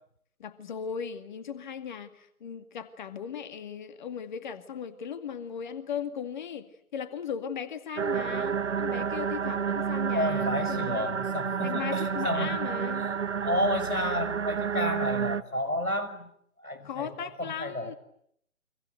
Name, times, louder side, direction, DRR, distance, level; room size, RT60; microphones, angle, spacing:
voice 1, 0.4-6.7 6.9-11.1 11.6-13.1 16.7-17.9, left 7 dB, 35° left, 10 dB, 2.3 m, -37 dB
sound 1, 8.0-15.4, right 7 dB, 55° right, 1.2 m, -30 dB
voice 2, 10.1-12.6 12.9-13.1 13.4-16.3 16.6-17.9, left 1 dB, 90° left, 11 dB, 5.7 m, -31 dB
30.0 x 25.0 x 8.0 m, 0.71 s
figure-of-eight pair, 145°, 42 cm